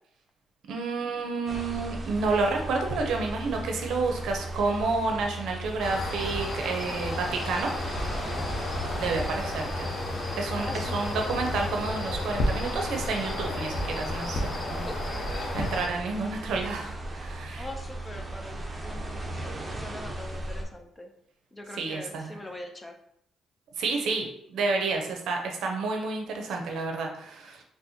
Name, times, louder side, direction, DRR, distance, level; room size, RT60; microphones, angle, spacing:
voice 1, 0.7-7.7 8.9-9.9 10.4-14.9 15.5-17.6 21.7-22.4 23.8-27.6, right 3 dB, 75° right, 2 dB, 0.6 m, -30 dB
sound 1, 1.5-20.6, right 1 dB, 25° right, 0.6 m, -37 dB
sound 2, 5.8-15.9, left 2 dB, 50° left, 0.8 m, -32 dB
voice 2, 6.6-7.0 8.2-8.5 10.6-11.4 14.8-15.3 17.6-21.1 21.5-23.0, left 1 dB, 20° left, 4 dB, 0.5 m, -43 dB
4.2 x 2.1 x 2.7 m, 0.73 s
cardioid pair, 90°, 0 cm